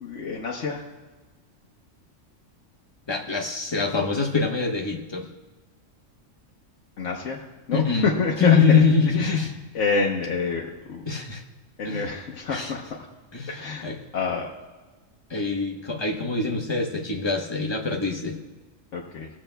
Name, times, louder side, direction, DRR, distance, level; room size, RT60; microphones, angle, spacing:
voice 1, 0.0-0.8 7.0-7.4 7.7-8.6 9.2-9.4 9.7-11.0 11.8-12.8 13.5-14.5 18.9-19.3, left 4 dB, 70° left, -2 dB, 1.1 m, -27 dB
voice 2, 3.1-5.3 7.7-9.5 11.0-11.4 11.8-12.1 12.5-12.7 13.3-14.0 15.3-18.4, left 5 dB, 25° left, 1 dB, 0.9 m, -24 dB
21.0 x 7.2 x 2.2 m, 1.2 s
omnidirectional pair, 1.3 m